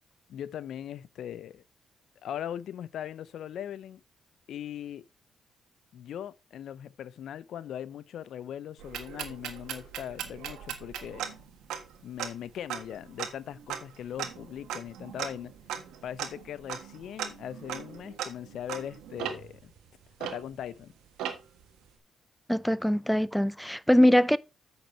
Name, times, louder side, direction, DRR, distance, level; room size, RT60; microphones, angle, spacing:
voice 1, 0.3-1.6 2.2-4.0 4.5-5.0 5.9-11.3 12.0-15.5 16.0-19.7 20.2-20.9, left 10 dB, 70° left, 0.5 m, -40 dB
sound 1, 8.8-20.8 21.2-21.6, right 9 dB, 85° right, 1.5 m, -39 dB
voice 2, 22.5-24.4, left 1 dB, ahead, 0.4 m, -22 dB
8.7 x 6.0 x 4.3 m
cardioid pair, 90°, 0 cm